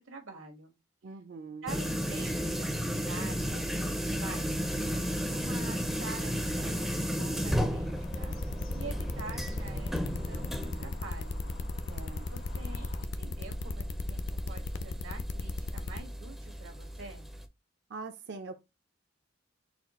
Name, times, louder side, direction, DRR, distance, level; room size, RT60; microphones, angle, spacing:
voice 1, 0.0-0.7 1.6-3.9 4.2-4.5 4.7-7.9 8.2-8.3 8.7-11.4 12.3-17.3, right 3 dB, 80° right, 1.3 m, -46 dB
voice 2, 1.0-1.7 11.9-12.3 17.9-18.6, right 3 dB, 55° right, 0.5 m, -43 dB
sound 1, 1.7-17.5, equal, ahead, 0.4 m, -34 dB
sound 2, 4.5-13.1, left 2 dB, 85° left, 0.9 m, -48 dB
sound 3, 8.0-16.0, left 3 dB, 55° left, 0.5 m, -36 dB
4.2 x 2.4 x 4.0 m
head